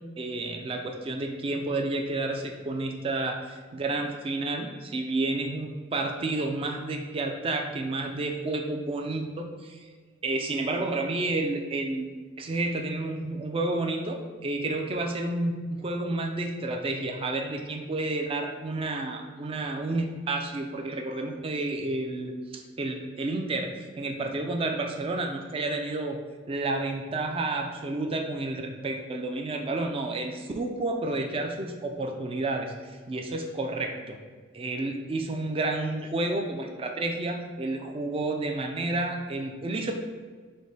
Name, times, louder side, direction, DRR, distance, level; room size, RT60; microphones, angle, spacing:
voice 1, 0.2-9.9 10.2-12.1 12.4-23.7 24.0-26.2 26.5-34.2 34.5-39.9, right 2 dB, 30° right, 3 dB, 0.4 m, -30 dB
5.1 x 2.2 x 4.0 m, 1.5 s
head